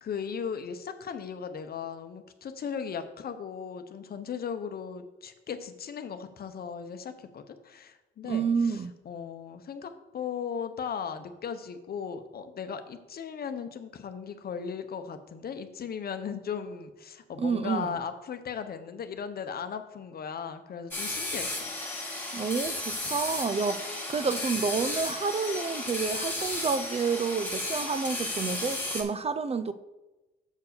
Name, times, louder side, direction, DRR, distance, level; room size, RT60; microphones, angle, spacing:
voice 1, 0.0-21.7 24.2-24.3, left 7 dB, 50° left, 0.9 m, -37 dB
voice 2, 8.3-8.9 17.4-17.9 22.3-29.7, right 5 dB, 30° right, 0.5 m, -29 dB
sound 1, 20.9-29.0, left 2 dB, 10° left, 2.1 m, -34 dB
7.0 x 4.6 x 6.7 m
cardioid pair, 90°, 20 cm